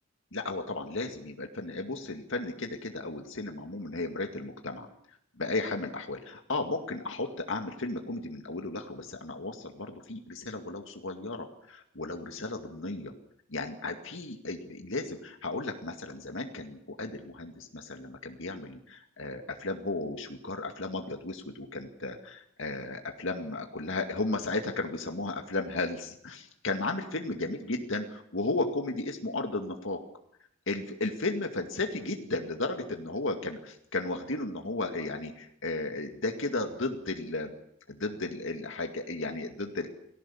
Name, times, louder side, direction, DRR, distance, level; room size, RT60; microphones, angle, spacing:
voice 1, 0.3-13.1 13.5-30.0 30.7-37.5 37.9-39.9, left 2 dB, 65° left, 4 dB, 2.2 m, -34 dB
29.0 x 19.5 x 7.2 m, 0.72 s
head